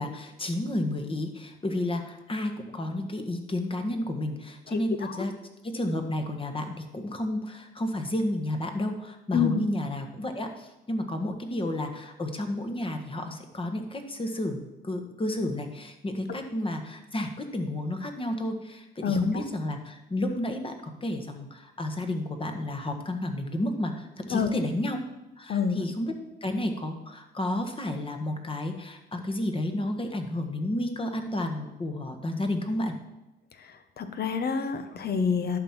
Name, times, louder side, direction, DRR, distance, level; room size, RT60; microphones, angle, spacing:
voice 1, 0.0-5.3 5.6-25.0 25.4-26.1 26.4-32.9, left 1 dB, 25° left, 5 dB, 1.6 m, -31 dB
voice 2, 4.7-5.1 9.3-9.6 19.0-19.4 24.3-24.5 25.5-25.8 34.0-35.6, left 6 dB, 55° left, 9 dB, 1.2 m, -27 dB
11.5 x 4.5 x 7.4 m, 0.99 s
cardioid pair, 90°, 20 cm